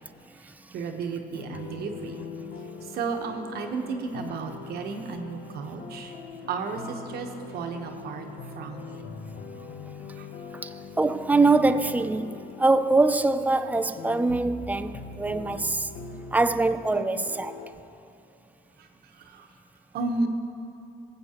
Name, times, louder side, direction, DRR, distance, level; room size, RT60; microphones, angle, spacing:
voice 1, 0.7-2.2 2.9-6.1 6.5-7.3 7.5-8.3 8.6-9.0 10.2-10.3 19.3-19.5 19.9-20.3, right 4 dB, 65° right, 1.0 m, -33 dB
sound 1, 1.3-17.7, left 4 dB, 80° left, 0.9 m, -42 dB
voice 2, 11.0-15.9 16.3-17.5, right 3 dB, 10° right, 0.4 m, -23 dB
19.0 x 8.3 x 2.9 m
cardioid pair, 110°, 17 cm